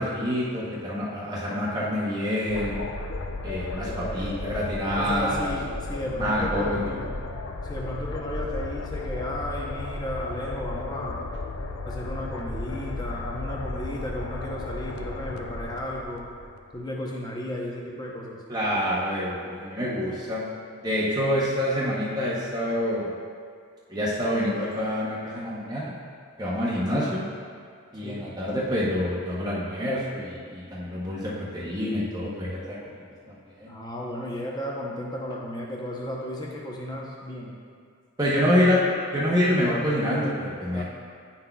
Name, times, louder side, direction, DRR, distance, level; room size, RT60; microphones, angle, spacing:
voice 1, 0.0-2.8 3.4-5.5 6.2-7.0 18.5-20.4 20.8-23.1 23.9-25.9 26.4-27.2 27.9-32.8 33.6-33.7 38.2-38.8 39.1-40.8, equal, 20° right, -7 dB, 0.8 m, -26 dB
sound 1, 2.5-16.7, left 2 dB, 75° left, 0.5 m, -34 dB
voice 2, 3.9-4.6 5.0-7.2 7.6-11.2 11.8-16.3 16.7-18.4 26.9-27.1 28.0-28.3 33.7-37.6 40.7-40.8, left 1 dB, 20° left, -2 dB, 0.7 m, -34 dB
9.5 x 5.8 x 2.3 m, 2.1 s
head